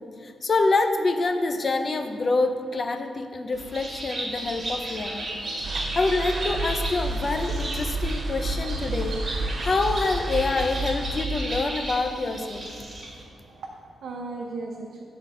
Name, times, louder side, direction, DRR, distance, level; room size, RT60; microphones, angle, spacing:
voice 1, 0.0-5.3 5.9-9.2 9.6-12.7, left 3 dB, 35° left, 7 dB, 0.6 m, -26 dB
Bird, 3.5-13.2, right 1 dB, 35° right, 1.8 m, -34 dB
sound 1, 5.6-11.3, right 5 dB, 50° right, 0.3 m, -34 dB
sound 2, 6.5-11.6, right 1 dB, 75° left, 1.0 m, -32 dB
voice 2, 13.2-15.0, right 3 dB, 85° right, -1 dB, 0.7 m, -37 dB
7.4 x 3.9 x 6.4 m, 2.4 s
wide cardioid pair, 120°, 0 cm